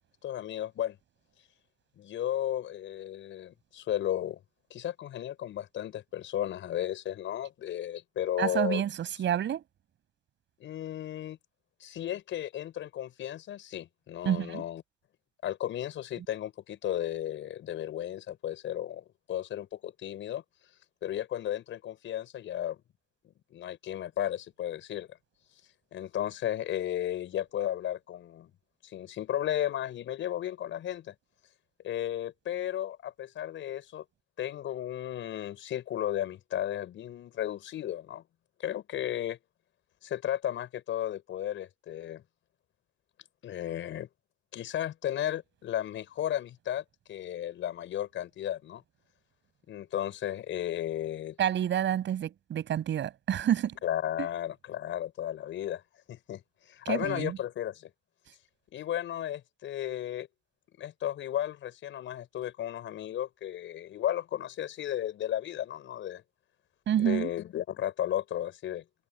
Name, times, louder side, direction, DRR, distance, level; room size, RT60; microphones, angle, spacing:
voice 1, 0.2-1.0 2.0-4.4 4.7-8.8 10.6-11.4 11.8-14.8 15.4-20.4 21.0-22.8 23.5-25.1 25.9-28.5 28.8-31.1 31.8-34.0 34.4-38.2 38.6-39.4 40.0-42.2 43.4-44.1 44.5-48.8 49.7-51.4 53.8-55.8 56.1-57.9 58.7-60.3 60.8-66.2 67.0-68.8, left 11 dB, 75° left, 5.9 m, -34 dB
voice 2, 8.4-9.6 14.2-14.6 51.4-53.8 56.9-57.4 66.9-67.3, right 10 dB, 70° right, 7.5 m, -28 dB
cardioid pair, 90°, 20 cm